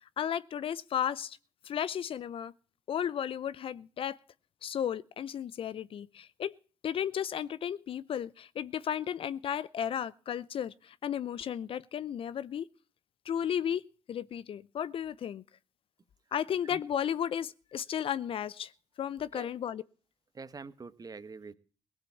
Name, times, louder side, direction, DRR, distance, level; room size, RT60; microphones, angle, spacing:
voice 1, 0.2-1.4 1.6-2.5 2.9-4.2 4.6-6.5 6.8-12.7 13.3-13.8 14.1-15.4 16.3-18.7 19.0-19.8, left 9 dB, 55° left, 0.7 m, -34 dB
voice 2, 20.3-21.5, right 4 dB, 35° right, 1.4 m, -45 dB
18.0 x 7.5 x 8.4 m
hypercardioid pair, 50°, 11 cm